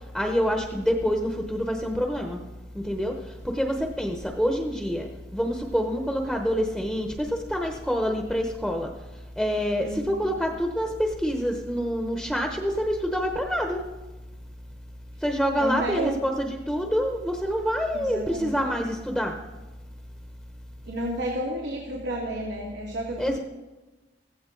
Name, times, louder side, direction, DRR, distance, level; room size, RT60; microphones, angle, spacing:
voice 1, 0.1-2.4 2.7-3.2 3.4-8.9 9.4-13.8 15.2-19.4 23.2-23.4, equal, ahead, 3 dB, 0.9 m, -26 dB
voice 2, 9.8-10.2 15.5-16.2 17.9-18.6 20.9-23.4, right 1 dB, 85° right, -2 dB, 2.3 m, -31 dB
15.5 x 15.5 x 3.9 m, 1.2 s
head